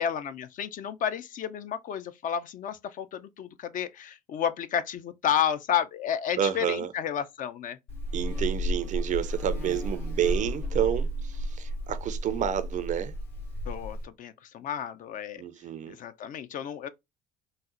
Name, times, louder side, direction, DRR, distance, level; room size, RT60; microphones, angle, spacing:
voice 1, 0.0-7.8 13.6-15.4 15.9-16.9, left 9 dB, 45° left, 0.4 m, -31 dB
voice 2, 6.4-6.9 8.1-13.1 15.4-15.9, right 10 dB, 40° right, 0.4 m, -29 dB
Buzz, 7.9-14.0, equal, 65° left, 1.7 m, -32 dB
3.9 x 2.1 x 2.4 m
hypercardioid pair, 60°, 19 cm